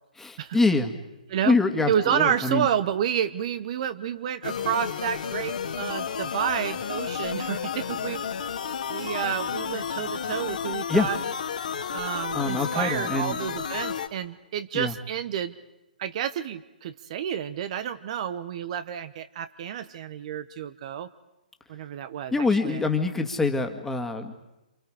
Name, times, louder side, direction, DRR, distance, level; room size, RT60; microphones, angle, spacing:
voice 1, 0.2-0.9 1.4-2.7 10.9-11.1 12.3-13.4 14.7-14.9 22.3-24.4, left 3 dB, 5° left, 5 dB, 2.2 m, -25 dB
voice 2, 1.9-8.2 8.9-11.2 11.9-15.5 16.0-21.1 21.7-22.8, right 9 dB, 45° right, 12 dB, 1.0 m, -30 dB
sound 1, 4.4-14.1, left 7 dB, 60° left, 2.3 m, -32 dB
29.0 x 28.5 x 5.0 m, 0.97 s
figure-of-eight pair, 125°, 5 cm